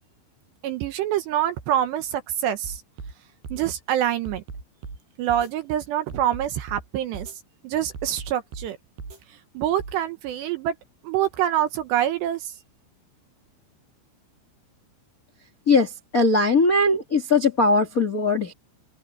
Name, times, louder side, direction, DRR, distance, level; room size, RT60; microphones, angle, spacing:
voice 1, 0.6-2.8 3.5-4.4 5.2-7.3 7.6-8.8 9.5-10.8 11.0-12.5, right 11 dB, 70° right, 2.8 m, -25 dB
sound 1, 2.6-3.1 3.4-3.7 4.3-5.0 5.3-5.5 6.1-6.8 7.1-7.4 7.9-8.7 9.0-9.2 9.8-10.0, right 4 dB, 55° right, 9.3 m, -37 dB
voice 2, 15.6-18.5, left 3 dB, 50° left, 1.0 m, -20 dB
omnidirectional pair, 5.8 m